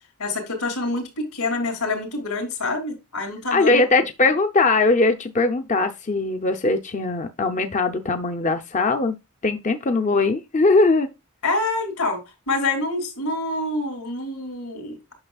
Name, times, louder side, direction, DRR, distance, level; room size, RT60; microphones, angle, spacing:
voice 1, 0.2-3.8 11.4-15.1, left 2 dB, 85° left, 3.1 m, -26 dB
voice 2, 3.5-9.1 9.4-11.1, left 3 dB, 35° left, 0.6 m, -20 dB
8.7 x 6.2 x 2.3 m
head